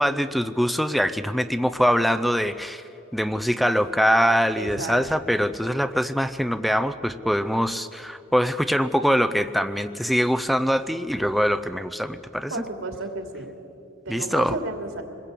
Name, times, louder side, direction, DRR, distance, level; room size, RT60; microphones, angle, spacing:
voice 1, 0.0-2.8 3.1-12.6 14.1-14.6, equal, ahead, 10 dB, 0.5 m, -23 dB
voice 2, 4.6-5.0 12.5-13.5 14.0-15.0, right 2 dB, 75° right, 4 dB, 2.9 m, -32 dB
26.0 x 21.0 x 8.4 m, 2.8 s
head